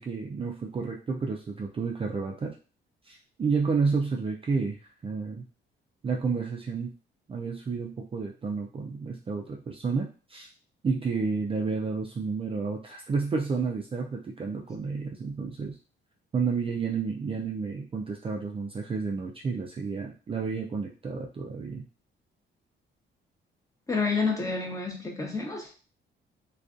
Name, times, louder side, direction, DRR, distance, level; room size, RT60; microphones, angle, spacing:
voice 1, 0.0-2.5 3.1-4.8 5.0-5.4 6.0-6.9 7.3-10.5 10.8-15.7 16.3-21.8, right 4 dB, 30° right, 0 dB, 0.4 m, -30 dB
voice 2, 23.9-25.7, left 4 dB, 15° left, 1 dB, 0.8 m, -29 dB
2.4 x 2.3 x 2.4 m, 0.35 s
cardioid pair, 90°, 20 cm